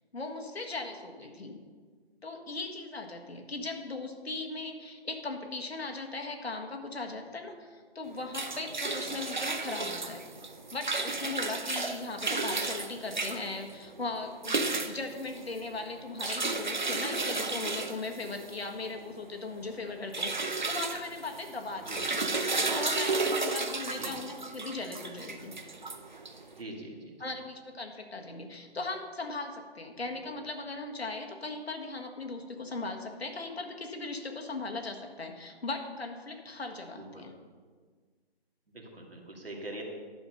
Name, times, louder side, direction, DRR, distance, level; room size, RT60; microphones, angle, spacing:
voice 1, 0.1-1.6 2.2-10.2 10.7-22.0 22.6-25.5 27.2-37.3, left 3 dB, 70° left, 3 dB, 1.6 m, -38 dB
sound 1, 8.1-26.6, right 3 dB, 45° right, 0.7 m, -33 dB
voice 2, 21.8-22.2 23.8-24.1 26.4-27.2 37.0-37.3 38.7-39.8, right 1 dB, 60° right, 0 dB, 2.4 m, -43 dB
11.0 x 5.7 x 6.3 m, 1.6 s
hypercardioid pair, 180°, 32 cm